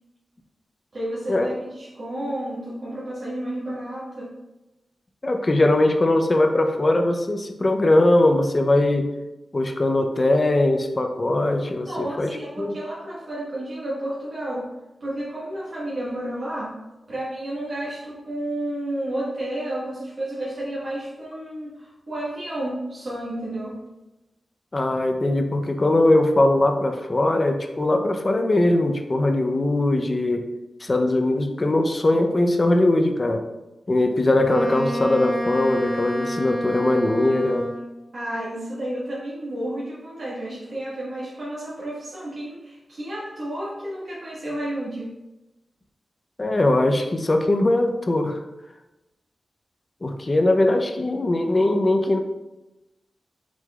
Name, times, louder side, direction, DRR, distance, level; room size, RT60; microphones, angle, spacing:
voice 1, 0.9-4.3 11.8-14.7 15.0-16.8 17.1-23.8 38.1-45.1, right 1 dB, 60° right, -8 dB, 1.4 m, -31 dB
voice 2, 5.2-9.1 9.5-12.8 24.7-30.4 30.8-33.4 33.9-37.7 46.4-48.4 50.0-52.2, left 1 dB, 30° left, 5 dB, 0.5 m, -20 dB
Wind instrument woodwind instrument, 34.4-38.0, equal, 5° right, 1.3 m, -29 dB
5.9 x 3.8 x 2.3 m, 1.0 s
wide cardioid pair, 95°, 0 cm